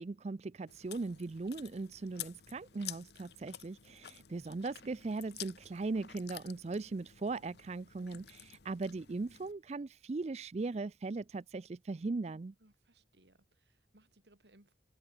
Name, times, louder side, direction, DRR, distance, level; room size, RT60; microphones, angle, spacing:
voice 1, 0.0-12.5, right 3 dB, 40° right, 0.4 m, -39 dB
Chewing mastication, 0.7-9.5, left 12 dB, 70° left, 1.2 m, -51 dB
voice 2, 12.6-14.7, right 1 dB, 75° right, 3.4 m, -66 dB
head